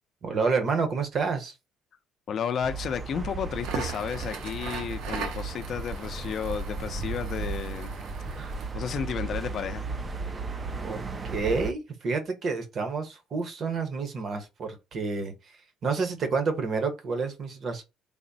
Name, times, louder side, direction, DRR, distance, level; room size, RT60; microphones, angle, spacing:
voice 1, 0.2-1.5 8.4-8.5 10.8-11.0 11.3-15.3 15.8-17.8, right 4 dB, 35° right, 0.7 m, -29 dB
voice 2, 2.3-8.0 8.7-9.9, left 7 dB, 40° left, 0.4 m, -32 dB
sound 1, 2.6-11.7, right 4 dB, 20° right, 0.3 m, -35 dB
Crackle, 3.5-8.8, right 5 dB, 85° right, 0.8 m, -39 dB
3.4 x 2.0 x 3.9 m
cardioid pair, 160°, 0 cm